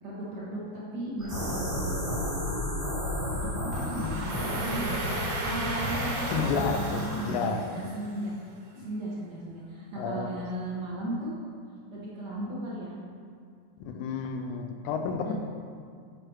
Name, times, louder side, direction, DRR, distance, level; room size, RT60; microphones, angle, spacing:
voice 1, 0.0-2.1 3.3-8.3 8.7-11.4 11.9-13.0 15.2-15.3, right 1 dB, 60° right, -6 dB, 1.0 m, -36 dB
sound 1, 1.2-7.3, left 1 dB, 20° right, 0.8 m, -32 dB
voice 2, 3.7-4.7 6.3-7.6 10.0-10.3 13.9-15.3, left 5 dB, 90° left, 5 dB, 2.0 m, -31 dB
Domestic sounds home sounds, 3.7-8.5, right 2 dB, 90° right, 2.5 m, -37 dB
6.6 x 5.0 x 4.6 m, 2.2 s
omnidirectional pair, 3.4 m